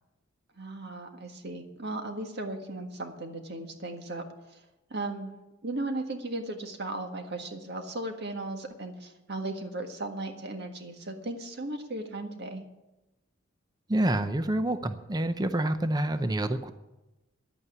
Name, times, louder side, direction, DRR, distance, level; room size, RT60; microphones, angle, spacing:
voice 1, 0.6-4.2 4.5-4.6 4.9-5.3 5.6-12.6, right 2 dB, 55° right, 4 dB, 1.7 m, -36 dB
voice 2, 13.9-16.7, right 1 dB, 20° right, 9 dB, 0.6 m, -27 dB
10.5 x 8.6 x 9.6 m, 1.0 s
head